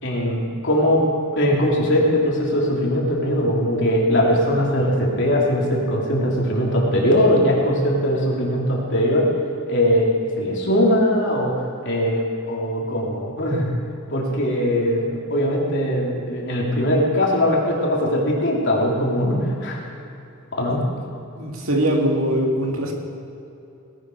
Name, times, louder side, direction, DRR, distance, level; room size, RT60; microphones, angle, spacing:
voice 1, 0.0-1.0 1.3-9.3 9.7-10.1 10.4-13.7 14.1-19.8 20.5-20.8, equal, 60° left, -3 dB, 3.2 m, -20 dB
voice 2, 21.4-22.9, right 1 dB, 85° right, 0 dB, 2.3 m, -22 dB
18.5 x 11.5 x 4.6 m, 2.8 s
head